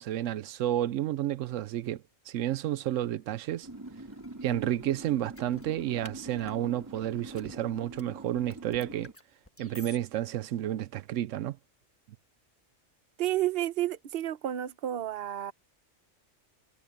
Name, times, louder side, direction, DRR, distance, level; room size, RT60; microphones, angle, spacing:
voice 1, 0.0-3.7 4.4-9.1 9.6-11.6, right 12 dB, 85° right, 0.9 m, -31 dB
sound 1, 2.9-3.0 3.9-4.3 5.3-6.6 7.2-8.0 8.3-10.0, left 1 dB, 10° left, 1.3 m, -51 dB
sound 2, 3.6-9.1, right 1 dB, 15° right, 4.8 m, -45 dB
voice 2, 13.2-15.5, right 13 dB, 55° right, 0.9 m, -31 dB
omnidirectional pair, 1.3 m